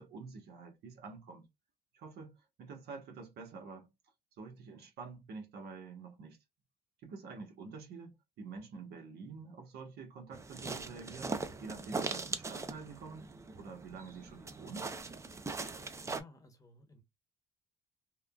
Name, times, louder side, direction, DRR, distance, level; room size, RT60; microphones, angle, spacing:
voice 1, 0.0-1.5 1.9-3.9 4.4-6.4 7.0-13.3 13.5-14.9, right 4 dB, 70° right, 1.2 m, -48 dB
sound 1, 10.3-16.2, right 3 dB, 15° right, 0.4 m, -40 dB
voice 2, 16.0-17.0, left 2 dB, 20° left, 0.9 m, -55 dB
3.5 x 2.3 x 2.3 m
cardioid pair, 110°, 17 cm